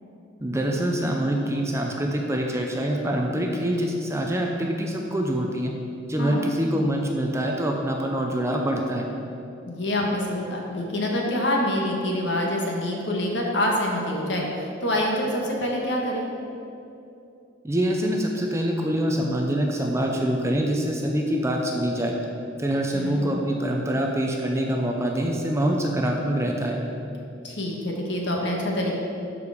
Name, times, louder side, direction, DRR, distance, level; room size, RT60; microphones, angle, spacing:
voice 1, 0.4-5.7 6.1-9.1 17.6-22.1 22.6-26.8, right 1 dB, 15° right, 1 dB, 0.6 m, -25 dB
voice 2, 6.2-6.5 9.6-14.5 14.8-16.3 22.9-23.3 27.4-29.0, left 1 dB, 60° left, -1 dB, 1.5 m, -26 dB
12.0 x 4.9 x 5.0 m, 2.7 s
head